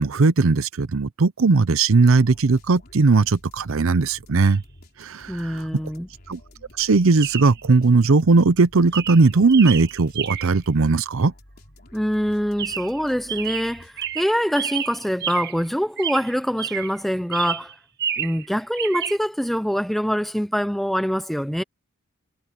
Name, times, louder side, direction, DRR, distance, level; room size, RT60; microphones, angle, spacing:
voice 1, 0.0-4.6 5.0-5.6 6.3-6.4 6.8-11.3, right 3 dB, 75° right, 0.7 m, -18 dB
sound 1, 2.2-14.4, left 1 dB, 45° left, 4.2 m, -50 dB
Chirp tweet, 4.4-4.6 7.2-7.6 8.3-8.6 8.9-10.7 12.6-13.0 13.3-15.7 16.0-17.0 17.3-18.5 18.8-19.2, right 9 dB, 50° right, 1.7 m, -30 dB
voice 2, 5.3-6.1 11.9-17.7 18.2-21.6, equal, ahead, 0.6 m, -24 dB
head